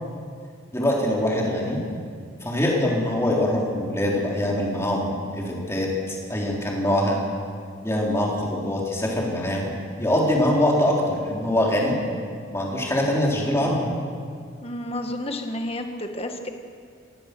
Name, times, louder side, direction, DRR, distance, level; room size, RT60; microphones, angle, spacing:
voice 1, 0.7-1.8 2.4-7.2 7.8-12.0 12.5-13.9, left 1 dB, 15° left, -3 dB, 3.9 m, -23 dB
voice 2, 14.6-16.5, left 1 dB, 30° left, 5 dB, 1.6 m, -31 dB
25.5 x 17.0 x 6.9 m, 2.2 s
head